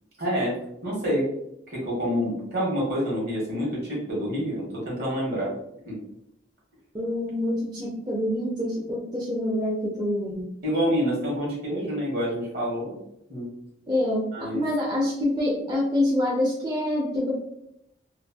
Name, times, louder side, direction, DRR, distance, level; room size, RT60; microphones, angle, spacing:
voice 1, 0.2-0.6 0.8-1.3 1.7-5.5 5.9-6.0 10.6-12.9 13.3-13.5 14.3-14.6, equal, 60° right, -4 dB, 1.2 m, -27 dB
voice 2, 6.9-10.4 13.9-14.3 14.5-17.3, left 1 dB, 25° right, -4 dB, 0.5 m, -26 dB
3.0 x 2.3 x 2.2 m, 0.78 s
head